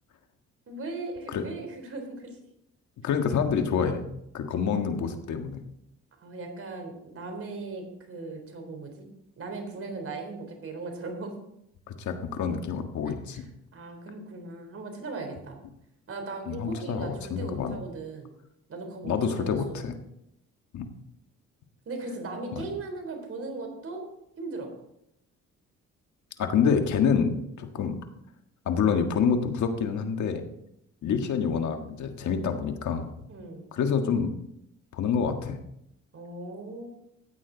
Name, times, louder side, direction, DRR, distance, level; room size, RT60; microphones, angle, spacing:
voice 1, 0.7-2.4 6.2-9.1 9.4-11.4 13.3-13.5 13.7-15.6 16.1-18.3 18.7-19.9 21.9-24.1 24.4-24.7 33.3-33.7 36.1-36.9, right 3 dB, 50° right, 4 dB, 3.7 m, -38 dB
voice 2, 3.0-4.0 4.3-5.6 12.0-13.4 16.5-17.8 19.0-19.9 20.7-20.9 26.4-28.0 28.7-30.4 31.0-33.1 33.7-34.3 34.9-35.6, left 6 dB, 70° left, 5 dB, 1.7 m, -27 dB
14.5 x 8.9 x 4.0 m, 0.78 s
cardioid pair, 90°, 30 cm